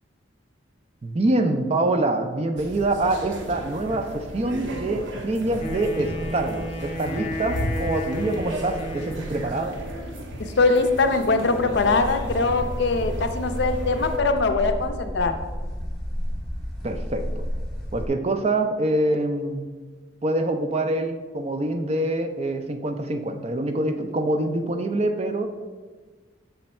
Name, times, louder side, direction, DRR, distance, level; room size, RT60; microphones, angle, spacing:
voice 1, 1.0-9.8 16.8-17.4 17.9-19.6 20.2-25.5, right 2 dB, 30° right, 6 dB, 0.4 m, -25 dB
sound 1, 2.6-14.2, right 1 dB, 65° right, 0.8 m, -34 dB
Wind instrument woodwind instrument, 5.6-9.6, left 1 dB, 30° left, 0.8 m, -34 dB
voice 2, 10.4-15.3, left 3 dB, 55° left, 7 dB, 0.5 m, -22 dB
sound 2, 11.7-18.1, equal, ahead, 0.8 m, -32 dB
6.8 x 3.2 x 4.2 m, 1.3 s
head